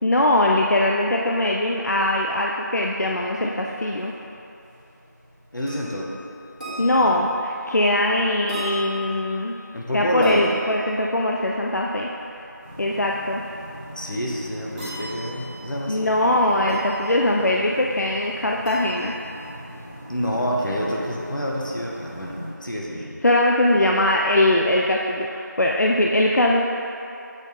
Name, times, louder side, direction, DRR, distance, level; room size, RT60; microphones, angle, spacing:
voice 1, 0.0-4.1 6.8-9.6 9.9-12.1 12.8-13.4 15.9-19.1 23.2-26.6, left 1 dB, 60° left, -1 dB, 0.4 m, -21 dB
sound 1, 3.0-20.5, left 1 dB, 25° right, 1.4 m, -42 dB
voice 2, 5.5-6.1 7.0-7.1 9.7-10.5 13.9-16.1 20.1-22.3 22.6-23.2, equal, 85° left, -3 dB, 1.4 m, -27 dB
sound 2, 12.6-22.5, equal, 5° left, 1.2 m, -41 dB
8.1 x 4.5 x 3.9 m, 2.8 s
figure-of-eight pair, 175°, 10 cm